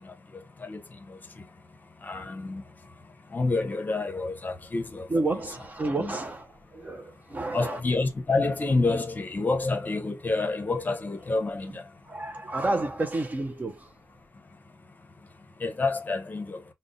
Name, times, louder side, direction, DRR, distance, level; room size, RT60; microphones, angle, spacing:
voice 1, 2.0-2.6 3.3-5.1 6.0-6.1 7.5-11.8 15.6-16.6, left 3 dB, 35° left, 0.7 m, -28 dB
voice 2, 5.1-7.8 11.7-11.8 12.1-13.9, right 2 dB, 30° right, 0.4 m, -30 dB
5.1 x 2.1 x 2.5 m
wide cardioid pair, 115°, 5 cm